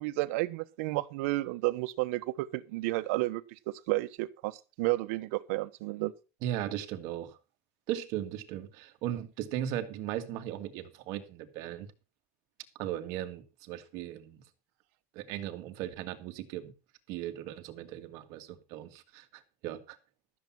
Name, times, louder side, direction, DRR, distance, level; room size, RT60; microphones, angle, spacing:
voice 1, 0.0-3.4 3.9-6.1, right 20 dB, 75° right, 1.0 m, -31 dB
voice 2, 6.4-7.4 7.9-11.9 12.8-14.4 15.1-16.7 17.1-20.0, right 12 dB, 55° right, 2.0 m, -37 dB
13.5 x 7.4 x 6.0 m
cardioid pair, 155°, 7 cm